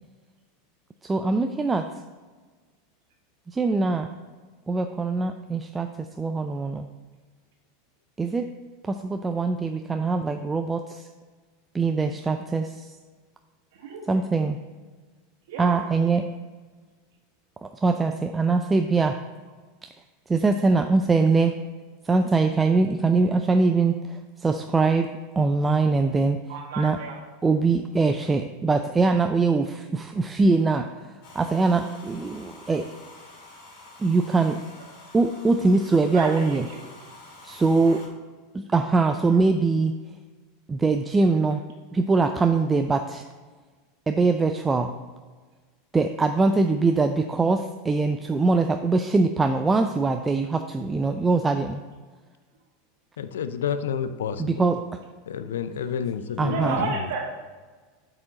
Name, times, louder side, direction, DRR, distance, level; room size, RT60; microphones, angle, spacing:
voice 1, 1.0-1.9 3.5-4.1 4.7-6.9 8.2-8.5 8.8-11.1 11.7-13.0 14.1-14.6 15.6-16.2 17.6-19.2 19.8-19.9 20.3-21.5 22.0-25.1 25.4-26.4 26.8-27.0 27.4-29.7 29.9-32.9 34.0-34.6 35.1-36.7 37.6-38.0 38.5-39.9 40.7-41.6 41.9-43.2 44.1-44.9 45.9-51.8 54.4-54.8 56.4-56.9, right 3 dB, 15° right, 6 dB, 0.4 m, -22 dB
voice 2, 15.5-15.8 26.5-27.2 36.1-36.6 56.4-57.2, right 4 dB, 70° right, 0 dB, 1.7 m, -31 dB
Domestic sounds home sounds, 31.2-38.1, left 2 dB, 55° left, 2.2 m, -47 dB
voice 3, 53.2-54.7 55.3-57.1, left 7 dB, 80° left, 12 dB, 0.4 m, -30 dB
8.3 x 4.9 x 3.8 m, 1.4 s
hypercardioid pair, 90°, 0 cm